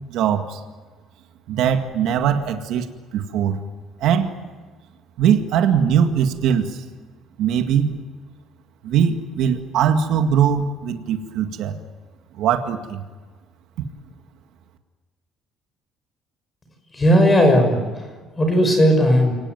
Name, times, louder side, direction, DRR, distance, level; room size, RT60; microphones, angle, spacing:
voice 1, 0.1-0.6 1.5-3.6 4.0-4.3 5.2-6.8 7.4-7.9 8.8-11.7 12.4-13.0, right 8 dB, 65° right, 6 dB, 2.0 m, -20 dB
voice 2, 16.9-18.0 18.4-19.3, equal, 15° left, 5 dB, 5.8 m, -16 dB
30.0 x 19.0 x 9.3 m, 1.4 s
cardioid pair, 170°, 0 cm